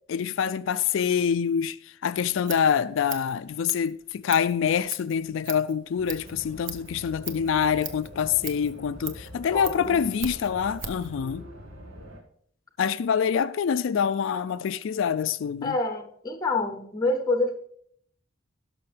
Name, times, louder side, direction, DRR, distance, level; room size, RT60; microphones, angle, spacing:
voice 1, 0.1-11.4 12.8-15.7, left 7 dB, 70° left, 0.3 m, -26 dB
Scissors, 2.2-11.1, right 7 dB, 65° right, 1.1 m, -40 dB
sound 1, 6.0-12.2, equal, 85° right, 2.0 m, -44 dB
voice 2, 9.5-10.0 15.6-17.6, left 2 dB, 20° left, 0.6 m, -27 dB
17.0 x 6.2 x 3.4 m
head